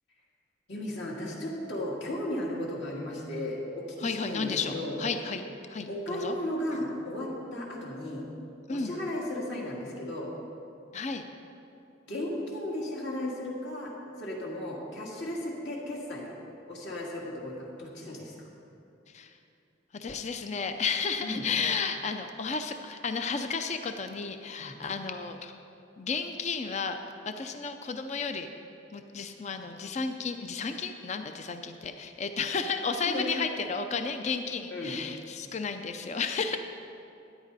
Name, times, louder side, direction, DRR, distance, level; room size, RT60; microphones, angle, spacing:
voice 1, 0.7-5.0 5.9-8.2 8.7-10.3 12.1-13.9 14.2-16.4 16.7-18.5 21.2-21.4 24.6-24.7 33.1-33.3 34.7-35.0, left 1 dB, 65° left, -3 dB, 2.2 m, -35 dB
voice 2, 4.0-4.7 5.0-5.4 5.7-6.4 8.7-8.9 10.9-11.2 19.1-19.3 19.9-25.5 26.0-27.0 27.3-28.5 28.9-36.6, left 5 dB, 35° left, 7 dB, 0.5 m, -32 dB
14.0 x 10.0 x 4.1 m, 2.7 s
head